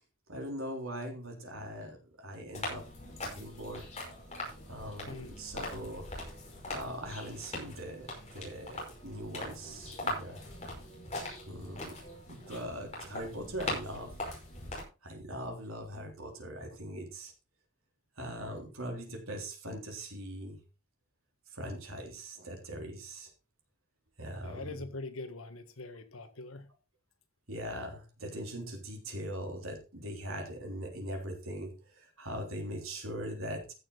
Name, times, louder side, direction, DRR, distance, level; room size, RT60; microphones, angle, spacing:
voice 1, 0.3-2.8 3.2-3.8 4.7-6.1 6.7-8.1 8.3-10.4 11.5-11.9 12.3-14.1 15.0-17.3 18.2-20.6 21.5-23.3 24.2-24.7 27.5-33.6, equal, 80° right, 3.4 m, -41 dB
sound 1, 2.5-14.8, left 1 dB, 35° left, 5.4 m, -41 dB
voice 2, 5.0-5.4 24.4-26.7, left 3 dB, 85° left, 1.5 m, -43 dB
15.0 x 6.8 x 4.0 m
head